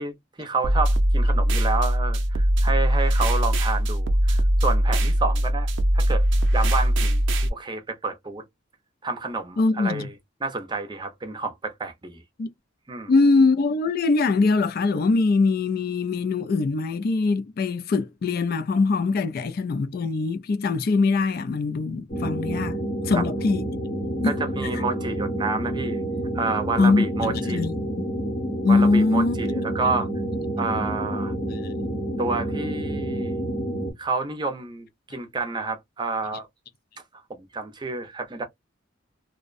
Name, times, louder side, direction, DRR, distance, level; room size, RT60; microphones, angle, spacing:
voice 1, 0.0-5.7 5.9-6.3 6.5-7.2 7.5-8.4 9.0-10.1 10.4-12.2 12.9-13.1 23.1-23.3 24.2-26.0 26.3-27.6 28.7-30.1 30.6-31.3 32.2-33.5 34.0-36.5 37.3-38.4, right 3 dB, 25° right, 0.5 m, -29 dB
sound 1, 0.6-7.5, equal, 70° right, 0.5 m, -21 dB
voice 2, 9.6-10.1 12.4-12.5 13.1-22.8 23.0-23.6 24.2-24.4 26.8-27.9 28.6-29.4 31.5-31.6, left 3 dB, 50° left, 0.3 m, -22 dB
sound 2, 22.1-33.9, right 1 dB, 35° left, 0.8 m, -29 dB
2.5 x 2.1 x 2.4 m
head